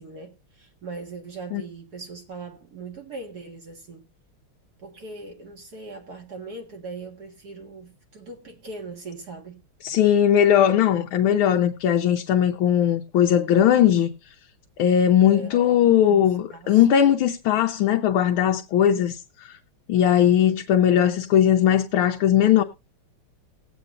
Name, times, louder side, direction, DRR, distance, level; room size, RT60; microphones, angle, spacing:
voice 1, 0.0-4.0 4.8-9.6 15.3-15.5 16.1-16.2 16.5-16.8, right 3 dB, 50° right, 2.1 m, -39 dB
voice 2, 9.8-14.1 14.8-19.2 19.9-22.6, left 10 dB, 80° left, 1.6 m, -19 dB
20.0 x 8.2 x 2.5 m
omnidirectional pair, 2.3 m